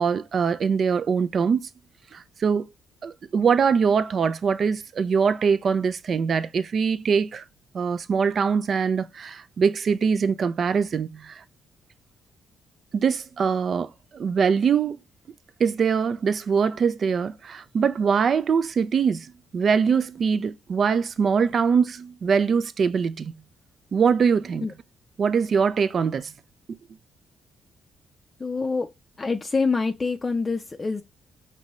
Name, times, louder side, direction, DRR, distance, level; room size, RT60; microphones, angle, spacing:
voice 1, 0.0-1.7 2.1-2.7 3.0-7.4 7.7-11.4 12.9-15.0 15.6-19.3 19.5-23.3 23.9-24.6 25.2-26.3, right 6 dB, 50° right, 0.4 m, -23 dB
voice 2, 28.4-28.9 29.2-31.0, left 4 dB, 25° left, 0.4 m, -26 dB
5.4 x 2.7 x 3.0 m
cardioid pair, 90°, 0 cm